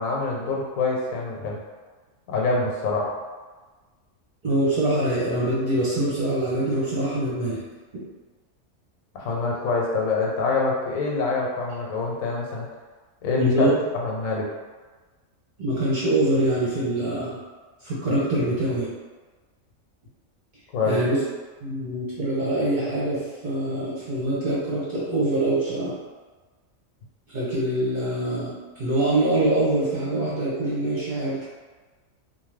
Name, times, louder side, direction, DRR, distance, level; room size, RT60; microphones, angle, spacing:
voice 1, 0.0-1.6 2.3-3.1 9.1-12.7 13.2-13.7 13.9-14.5 20.7-21.0, left 3 dB, 80° left, -2 dB, 1.0 m, -25 dB
voice 2, 4.4-7.6 13.4-13.8 15.6-17.4 17.8-18.9 20.9-21.2 21.6-25.9 27.3-31.4, right 1 dB, 45° right, -8 dB, 0.7 m, -24 dB
2.9 x 2.1 x 3.2 m, 1.3 s
omnidirectional pair, 1.4 m